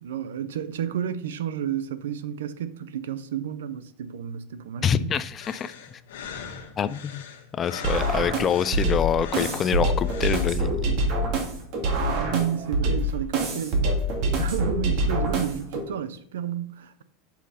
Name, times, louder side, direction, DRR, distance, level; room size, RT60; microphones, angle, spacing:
voice 1, 0.0-5.2 11.9-13.8 14.4-17.0, right 9 dB, 90° right, 0.6 m, -31 dB
voice 2, 4.8-6.0 6.8-7.2 7.5-11.0, left 8 dB, 30° left, 0.4 m, -26 dB
sound 1, 5.4-10.6, left 7 dB, 85° left, 1.1 m, -41 dB
sound 2, 7.8-15.8, right 1 dB, 55° right, 2.1 m, -25 dB
6.1 x 5.8 x 4.2 m
supercardioid pair, 120°, 0 cm